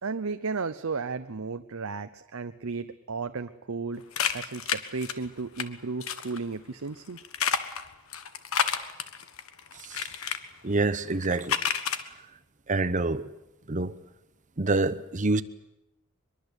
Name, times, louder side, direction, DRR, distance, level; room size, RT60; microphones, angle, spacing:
voice 1, 0.0-4.0 4.3-7.2, right 4 dB, 75° right, 0.8 m, -34 dB
sound 1, 4.1-5.6 6.0-6.4 7.2-10.4 11.1-12.0, left 7 dB, 90° left, 1.4 m, -29 dB
voice 2, 10.6-11.6 12.7-13.2 13.7-13.9 14.6-15.4, right 3 dB, 35° right, 1.0 m, -26 dB
23.0 x 22.5 x 8.2 m
head